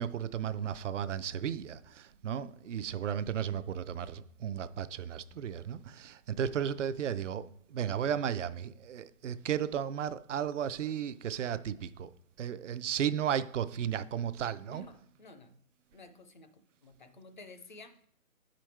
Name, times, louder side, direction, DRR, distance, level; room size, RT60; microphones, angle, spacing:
voice 1, 0.0-12.1 12.4-14.8, right 9 dB, 55° right, 0.5 m, -34 dB
voice 2, 14.7-15.5 15.9-16.5 16.8-18.1, left 2 dB, 35° left, 0.5 m, -52 dB
7.0 x 5.2 x 4.4 m
hypercardioid pair, 145°, 44 cm